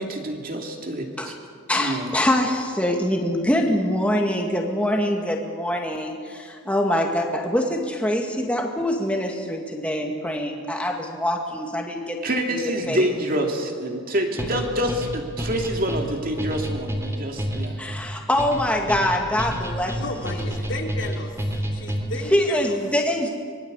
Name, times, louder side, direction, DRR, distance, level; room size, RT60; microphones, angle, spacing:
voice 1, 0.0-1.3 1.8-2.1 12.2-17.8, equal, 40° right, 2 dB, 2.8 m, -27 dB
voice 2, 1.7-12.2 12.5-13.1 17.8-20.0 20.3-20.4 22.3-23.3, left 1 dB, 5° left, 1 dB, 2.2 m, -24 dB
sound 1, 14.4-22.3, equal, 15° right, 3.1 m, -29 dB
voice 3, 20.0-21.4 21.7-22.8, left 2 dB, 60° left, 1 dB, 3.4 m, -33 dB
25.5 x 21.5 x 8.3 m, 2.1 s
head